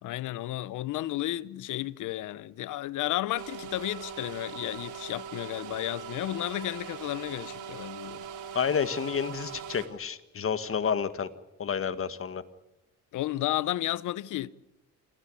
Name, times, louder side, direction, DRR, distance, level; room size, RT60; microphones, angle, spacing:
voice 1, 0.0-8.2 13.1-14.5, left 14 dB, 80° left, 0.9 m, -33 dB
sound 1, 3.4-9.9, right 7 dB, 85° right, 3.6 m, -41 dB
voice 2, 8.5-11.3 11.6-12.4, left 7 dB, 45° left, 1.7 m, -30 dB
28.0 x 15.5 x 8.6 m
cardioid pair, 90°, 30 cm